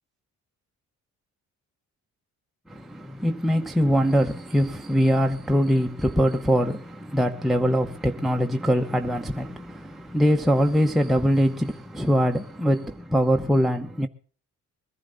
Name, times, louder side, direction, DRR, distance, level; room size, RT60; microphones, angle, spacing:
voice 1, 2.7-14.1, equal, ahead, 0.8 m, -23 dB
21.5 x 11.5 x 3.9 m
cardioid pair, 90°, 30 cm